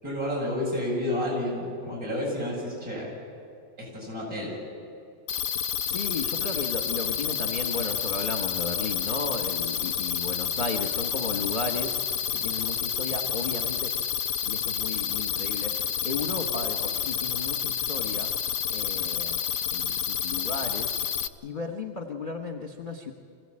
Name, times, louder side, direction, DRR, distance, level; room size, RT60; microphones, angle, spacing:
voice 1, 0.0-3.1 3.8-4.5, left 1 dB, 45° right, -3 dB, 8.1 m, -30 dB
sound 1, 5.3-21.3, left 8 dB, 60° left, 1.1 m, -29 dB
voice 2, 5.9-12.0 12.3-13.9 14.4-15.7 16.0-18.3 18.7-19.4 19.7-21.0 21.4-23.1, left 3 dB, 30° left, 4 dB, 1.3 m, -34 dB
25.0 x 16.0 x 8.8 m, 2.6 s
omnidirectional pair, 2.2 m